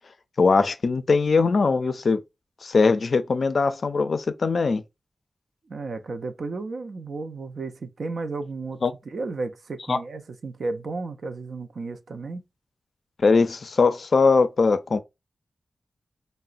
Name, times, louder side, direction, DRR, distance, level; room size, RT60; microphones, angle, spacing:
voice 1, 0.4-2.2 2.6-4.8 8.8-8.9 9.9-10.0 13.2-15.0, left 4 dB, 65° left, 0.3 m, -21 dB
voice 2, 5.7-12.4, right 3 dB, 75° right, 0.4 m, -33 dB
3.7 x 2.0 x 2.4 m
wide cardioid pair, 95°, 0 cm